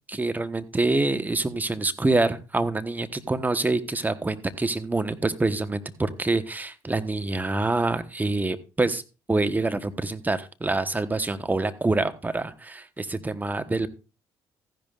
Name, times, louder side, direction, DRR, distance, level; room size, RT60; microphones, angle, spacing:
voice 1, 0.1-9.0 9.3-13.9, right 2 dB, 20° right, 10 dB, 1.2 m, -26 dB
15.0 x 10.5 x 2.5 m, 0.32 s
hypercardioid pair, 60°, 9 cm